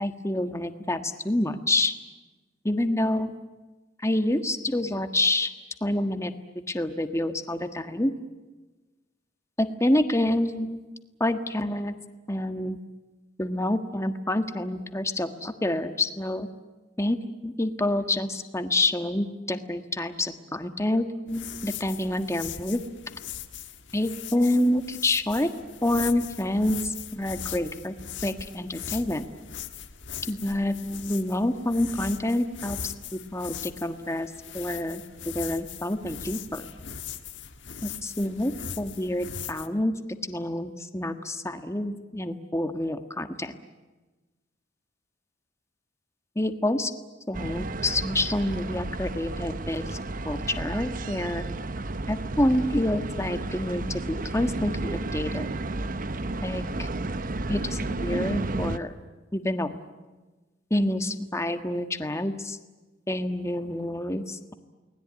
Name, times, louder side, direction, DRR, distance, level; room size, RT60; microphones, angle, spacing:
voice 1, 0.0-2.0 2.6-3.3 4.0-5.5 5.8-6.3 6.7-8.1 9.6-10.8 11.2-11.9 12.3-12.8 13.4-16.5 17.0-17.2 17.4-22.8 23.9-25.5 25.8-27.9 28.2-29.2 30.2-36.6 37.8-39.9 40.2-43.5 46.3-46.9 47.3-50.0 50.2-51.4 52.1-54.8 55.1-55.5 56.4-56.9 57.5-58.9 59.3-59.8 60.7-62.6 63.1-64.5, left 1 dB, 15° left, 8 dB, 1.6 m, -27 dB
sound 1, 21.3-39.7, left 8 dB, 90° left, 1.5 m, -40 dB
sound 2, 47.3-58.8, right 2 dB, 50° right, 1.0 m, -32 dB
29.5 x 20.0 x 9.6 m, 1.2 s
head